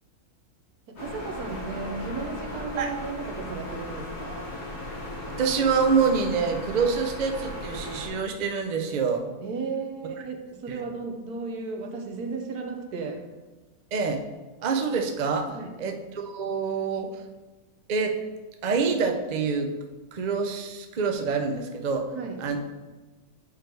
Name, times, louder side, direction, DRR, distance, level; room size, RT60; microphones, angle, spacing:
voice 1, 0.9-4.5 9.4-13.3 15.5-15.7 22.1-22.4, right 4 dB, 80° right, 4 dB, 1.4 m, -34 dB
sound 1, 1.0-8.1, left 1 dB, 75° left, 2.2 m, -36 dB
voice 2, 5.4-9.3 10.7-10.8 13.9-14.2 14.6-17.2 17.9-18.2 18.6-19.7 20.1-22.1 22.4-22.6, right 5 dB, 55° right, 5 dB, 0.4 m, -26 dB
8.3 x 3.3 x 4.5 m, 1.2 s
omnidirectional pair, 1.6 m